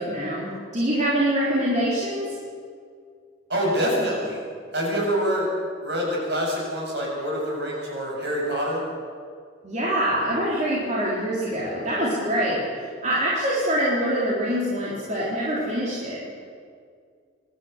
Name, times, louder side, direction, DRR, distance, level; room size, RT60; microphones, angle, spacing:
voice 1, 0.0-2.4 9.6-16.2, right 1 dB, 35° right, -6 dB, 4.0 m, -25 dB
voice 2, 3.5-4.4 4.7-5.5 5.8-8.8, equal, 55° right, -2 dB, 7.3 m, -25 dB
27.0 x 12.5 x 8.2 m, 2.1 s
head